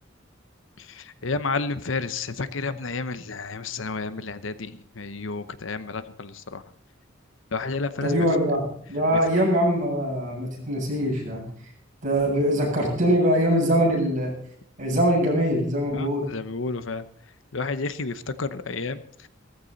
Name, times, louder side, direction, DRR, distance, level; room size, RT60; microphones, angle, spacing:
voice 1, 0.8-6.6 7.5-8.3 9.1-9.2 15.9-17.0 17.5-19.3, left 3 dB, 65° left, 13 dB, 0.9 m, -31 dB
voice 2, 8.0-11.5 12.0-14.3 14.8-16.3, equal, 40° right, -2 dB, 7.8 m, -23 dB
17.0 x 14.5 x 4.1 m, 0.63 s
head